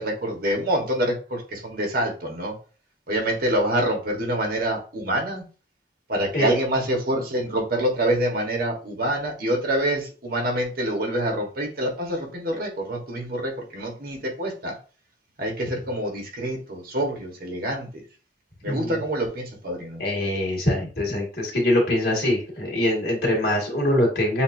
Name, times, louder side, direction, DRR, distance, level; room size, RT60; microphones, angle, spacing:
voice 1, 0.0-2.5 3.1-5.4 6.1-14.8 15.4-17.9 18.6-20.0, right 1 dB, 55° right, 2 dB, 1.3 m, -26 dB
voice 2, 18.7-19.0 20.0-24.4, left 1 dB, 60° left, -2 dB, 2.0 m, -23 dB
7.2 x 2.7 x 2.6 m, 0.37 s
head